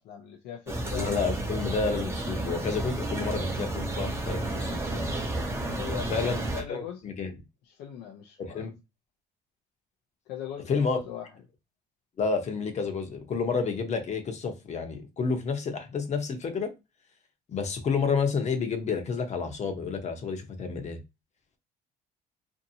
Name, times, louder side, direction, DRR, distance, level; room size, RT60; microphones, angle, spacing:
voice 1, 0.0-1.1 5.7-7.0 7.6-8.7 10.3-11.3, left 9 dB, 80° left, 0.5 m, -40 dB
sound 1, 0.7-6.6, right 2 dB, 15° right, 0.7 m, -31 dB
voice 2, 0.9-5.1 6.1-6.4 6.7-7.4 8.4-8.7 10.7-11.0 12.2-16.7 17.5-21.0, left 5 dB, 45° left, 0.8 m, -30 dB
2.7 x 2.5 x 2.7 m
cardioid pair, 110°, 17 cm